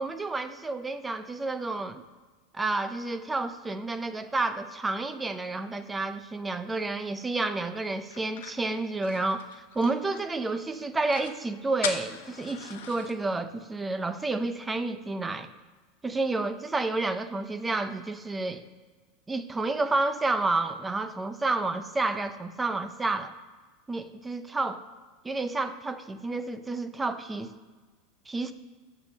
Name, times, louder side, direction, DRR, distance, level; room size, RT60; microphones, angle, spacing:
voice 1, 0.0-2.0 2.5-15.5 16.0-18.6 19.3-23.3 23.9-24.8 25.2-27.5 28.3-28.5, right 3 dB, 10° right, 10 dB, 0.4 m, -30 dB
sound 1, 8.1-10.5 10.8-10.9 11.1-11.4 11.8-13.1, left 8 dB, 80° left, 0.9 m, -38 dB
7.1 x 6.8 x 6.9 m, 1.3 s
supercardioid pair, 175°, 0 cm